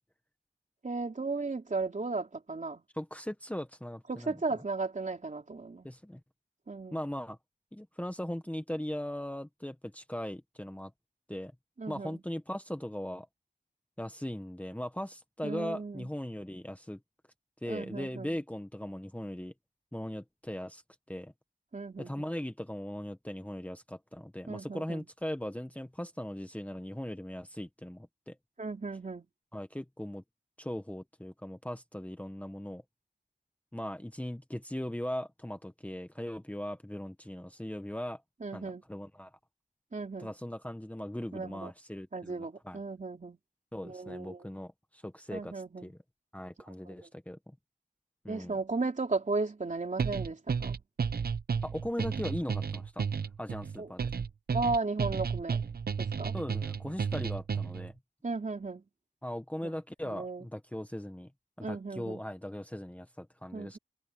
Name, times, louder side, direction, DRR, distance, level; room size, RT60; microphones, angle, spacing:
voice 1, 0.8-2.8 4.1-5.9 6.7-7.0 11.8-12.2 15.4-16.1 17.7-18.4 21.7-22.3 24.5-25.1 28.6-29.3 38.4-38.8 39.9-40.3 41.3-41.7 42.1-43.4 43.8-44.4 45.3-45.9 46.9-47.1 48.3-50.8 53.8-53.9 54.5-55.6 56.0-56.4 58.2-58.8 59.6-59.7 60.1-60.5 61.6-62.2 63.5-63.8, right 3 dB, 45° right, 3.5 m, -35 dB
voice 2, 2.9-4.3 5.8-6.2 6.9-7.4 7.7-10.9 11.3-11.5 11.9-13.3 14.0-17.0 17.6-19.5 19.9-20.8 21.1-21.3 22.0-28.3 29.5-30.2 30.6-32.8 33.7-38.2 38.5-39.3 40.2-42.8 43.7-46.0 46.3-47.5 48.2-48.6 51.6-53.1 53.4-54.1 56.3-57.9 59.2-61.3 61.6-63.8, left 1 dB, 10° left, 1.3 m, -39 dB
sound 1, 50.0-57.9, right 6 dB, 65° right, 0.7 m, -32 dB
wide cardioid pair, 95°, 17 cm